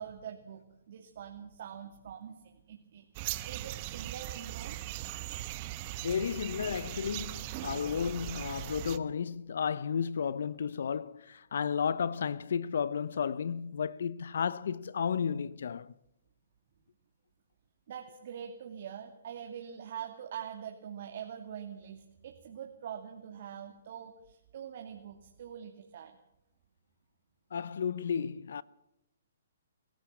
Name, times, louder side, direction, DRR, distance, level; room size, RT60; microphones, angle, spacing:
voice 1, 0.0-4.8 17.9-26.1, right 8 dB, 55° right, 2.6 m, -44 dB
sound 1, 3.1-9.0, right 15 dB, 35° right, 1.1 m, -39 dB
voice 2, 6.0-15.9 27.5-28.6, left 7 dB, 70° left, 0.7 m, -33 dB
24.5 x 15.5 x 7.4 m
hypercardioid pair, 140°, 0 cm